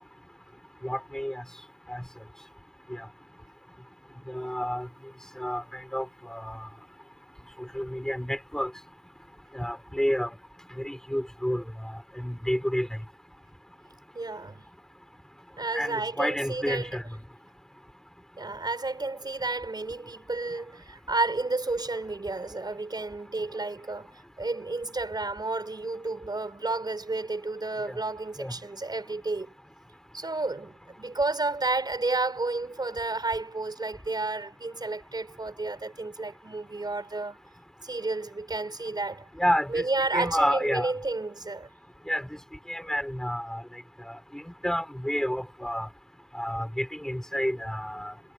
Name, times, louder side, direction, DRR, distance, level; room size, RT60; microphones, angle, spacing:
voice 1, 0.8-1.4 1.9-2.0 4.3-4.9 5.4-5.6 5.9-6.7 7.7-8.7 9.5-10.3 10.8-11.9 12.2-12.9 15.7-17.0 27.8-27.9 28.4-28.5 39.4-39.8 40.1-40.9 42.1-42.3 42.7-43.6 44.1-45.9 46.3-48.1, equal, 5° left, 6.6 m, -30 dB
voice 2, 14.1-14.7 15.6-17.0 18.4-29.5 30.1-37.4 37.8-39.3 39.7-41.7, right 3 dB, 80° right, 5.9 m, -31 dB
wide cardioid pair, 55°, 7 cm